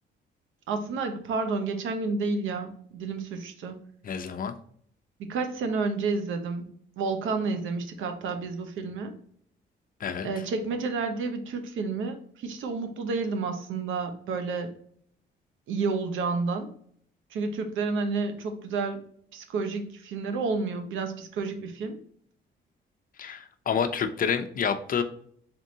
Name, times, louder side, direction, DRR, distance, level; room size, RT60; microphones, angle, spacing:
voice 1, 0.7-3.8 5.2-6.7 7.0-9.1 10.2-14.7 15.7-16.7 17.3-19.0 19.3-22.0, right 4 dB, 80° right, 7 dB, 0.8 m, -30 dB
voice 2, 4.0-4.5 10.0-10.3 23.2-25.0, left 7 dB, 45° left, 8 dB, 0.6 m, -28 dB
3.7 x 3.6 x 2.7 m, 0.62 s
cardioid pair, 90°, 20 cm